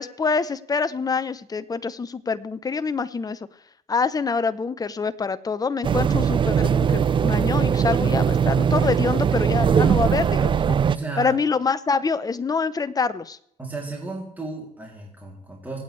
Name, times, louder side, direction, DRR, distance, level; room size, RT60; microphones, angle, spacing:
voice 1, 0.0-3.5 3.9-10.8 11.2-13.4, left 5 dB, 20° left, 12 dB, 0.8 m, -26 dB
sound 1, 5.8-11.0, right 7 dB, 30° right, 0.4 m, -20 dB
voice 2, 10.8-11.4 13.6-15.8, right 3 dB, 10° right, -1 dB, 3.0 m, -34 dB
26.0 x 8.7 x 3.3 m, 0.72 s
cardioid pair, 110°, 17 cm